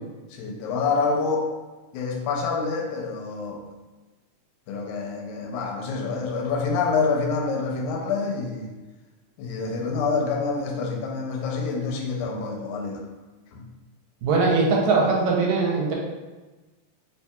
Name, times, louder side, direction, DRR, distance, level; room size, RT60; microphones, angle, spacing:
voice 1, 0.3-1.5 1.9-3.7 4.7-8.7 9.4-13.0 13.5-13.7, left 4 dB, 85° left, -1 dB, 2.0 m, -27 dB
voice 2, 14.2-15.9, right 3 dB, 75° right, -2 dB, 1.9 m, -21 dB
4.5 x 2.8 x 2.3 m, 1.2 s
omnidirectional pair, 3.4 m